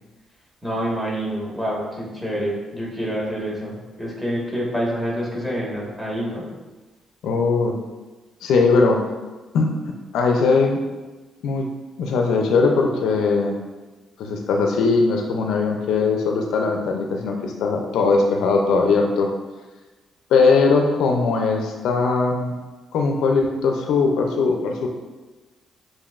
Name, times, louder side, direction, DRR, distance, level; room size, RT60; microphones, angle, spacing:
voice 1, 0.6-6.5, equal, 5° right, -4 dB, 1.5 m, -27 dB
voice 2, 7.2-7.8 8.4-9.0 9.5-9.7 10.1-10.8 11.4-11.7 12.0-13.6 14.2-19.3 20.3-22.5 22.9-24.9, left 4 dB, 80° left, 2 dB, 0.5 m, -20 dB
7.1 x 2.6 x 2.4 m, 1.2 s
cardioid pair, 90°, 0 cm